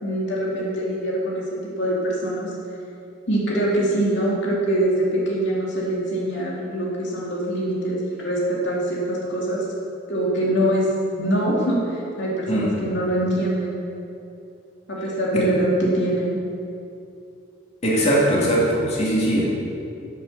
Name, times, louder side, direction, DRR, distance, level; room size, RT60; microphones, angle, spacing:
voice 1, 0.0-2.5 3.3-9.6 10.1-10.9 11.2-13.8 14.9-16.4, right 1 dB, 65° left, -4 dB, 2.5 m, -23 dB
voice 2, 17.8-19.4, right 1 dB, 35° left, -5 dB, 2.6 m, -20 dB
10.5 x 8.4 x 6.8 m, 2.6 s
head